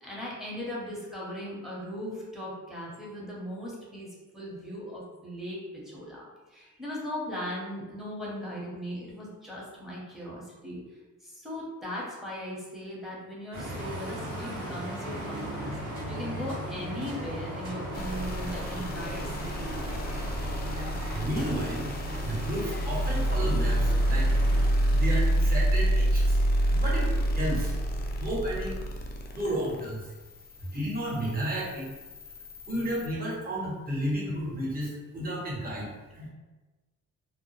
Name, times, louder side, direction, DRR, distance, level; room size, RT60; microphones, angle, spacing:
voice 1, 0.0-4.1 4.3-10.8 11.2-15.7 16.1-19.7, equal, ahead, -5 dB, 0.8 m, -38 dB
sound 1, 13.5-24.7, equal, 90° right, 1.0 m, -37 dB
sound 2, 17.9-33.1, right 1 dB, 35° left, 0.4 m, -28 dB
voice 2, 21.1-21.9 22.2-24.7 24.9-26.4 26.7-27.7 28.2-28.7 29.3-30.1 30.6-31.9 32.7-35.9 36.1-36.3, right 1 dB, 30° right, -6 dB, 1.0 m, -32 dB
2.1 x 2.1 x 3.0 m, 1.2 s
cardioid pair, 90°, 30 cm